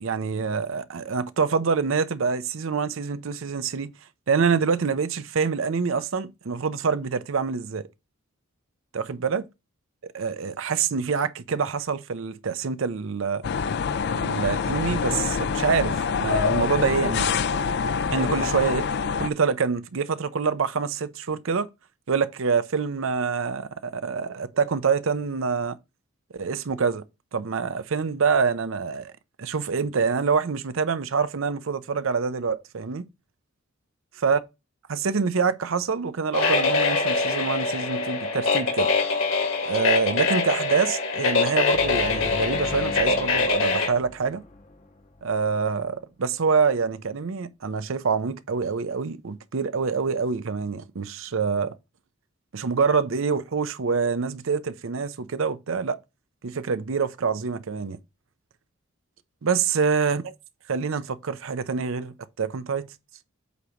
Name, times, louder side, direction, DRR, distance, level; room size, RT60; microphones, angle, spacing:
voice 1, 0.0-3.9 4.3-7.8 8.9-9.4 10.0-13.5 14.1-17.3 18.1-18.9 19.2-21.7 22.1-25.8 26.3-27.0 27.3-29.1 29.4-33.1 34.2-34.4 34.9-38.9 39.6-44.4 45.2-51.8 52.5-56.0 56.4-58.0 59.4-60.3 60.7-62.9, right 5 dB, 65° right, 0.6 m, -26 dB
sound 1, 13.4-19.3, left 6 dB, 50° left, 0.4 m, -25 dB
sound 2, 36.3-43.9, left 3 dB, 70° left, 2.0 m, -24 dB
sound 3, 41.7-45.5, left 1 dB, 35° left, 0.8 m, -39 dB
8.2 x 2.9 x 6.2 m
head